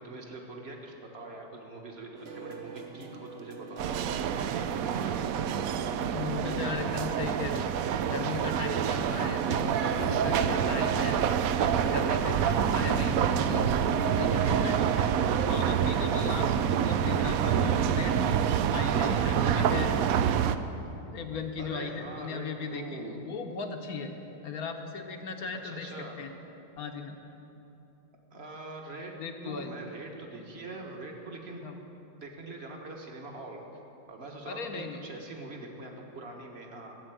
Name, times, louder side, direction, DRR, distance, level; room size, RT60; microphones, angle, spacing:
voice 1, 0.0-4.0 4.3-5.3 18.8-19.3 21.6-23.2 25.6-26.2 28.3-29.1 29.4-31.6 32.2-33.6 34.1-37.0, right 2 dB, 35° right, 1 dB, 1.6 m, -43 dB
sound 1, 2.2-14.5, right 3 dB, 50° right, 0.7 m, -46 dB
sound 2, 3.8-20.6, right 8 dB, 85° right, 0.7 m, -27 dB
voice 2, 6.1-7.7 8.0-11.2 11.6-13.7 14.0-15.1 15.4-18.4 18.7-20.0 20.7-20.9 21.1-24.1 24.4-25.9 26.2-26.3 26.8-27.2 29.2-29.7 31.6-31.8 34.4-35.0, left 5 dB, 55° left, 5 dB, 1.3 m, -37 dB
14.0 x 7.6 x 9.1 m, 3.0 s
omnidirectional pair, 2.0 m